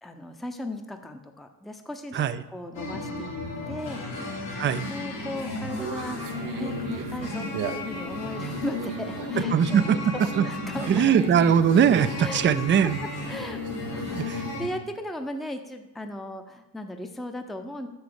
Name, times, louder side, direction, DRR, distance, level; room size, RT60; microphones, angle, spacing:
voice 1, 0.0-3.3 3.7-4.0 4.9-6.2 6.5-11.0 12.2-12.9 13.3-13.6 13.9-17.9, left 1 dB, ahead, 5 dB, 0.7 m, -37 dB
sound 1, 2.7-14.7, left 3 dB, 75° left, 2.7 m, -34 dB
voice 2, 4.6-4.9 9.5-10.4 10.9-13.0 14.2-14.4, right 8 dB, 25° right, 13 dB, 0.4 m, -21 dB
Conversation, 5.7-14.6, right 8 dB, 80° right, 0.8 m, -39 dB
6.7 x 6.4 x 4.8 m, 1.0 s
hypercardioid pair, 55°, 45 cm